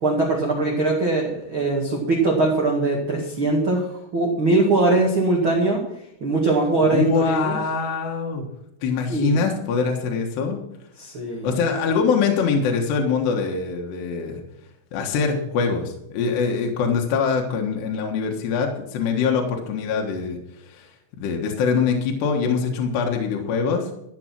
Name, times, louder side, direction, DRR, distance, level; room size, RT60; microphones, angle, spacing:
voice 1, 0.0-3.9 4.1-5.8 6.2-7.6 9.1-9.4 11.0-11.5, right 2 dB, 70° right, -2 dB, 1.2 m, -21 dB
voice 2, 6.8-8.5 8.8-10.6 11.4-14.4 14.9-20.9 21.2-23.9, left 5 dB, 65° left, 1 dB, 3.1 m, -23 dB
14.0 x 7.8 x 6.1 m, 0.80 s
omnidirectional pair, 5.9 m